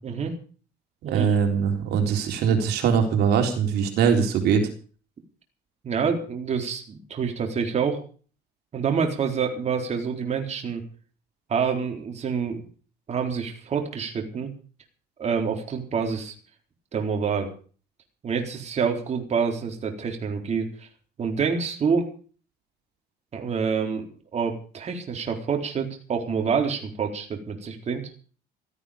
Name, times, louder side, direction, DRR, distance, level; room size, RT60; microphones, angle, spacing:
voice 1, 0.0-0.4 1.0-1.3 5.8-8.0 8.7-10.8 11.5-12.7 13.1-14.5 15.2-16.3 16.9-17.5 18.2-20.9 21.2-22.1 23.3-28.0, right 6 dB, 40° right, 3 dB, 4.0 m, -27 dB
voice 2, 1.0-4.7, right 7 dB, 75° right, 3 dB, 3.9 m, -22 dB
16.5 x 14.5 x 5.1 m, 0.41 s
cardioid pair, 110°, 17 cm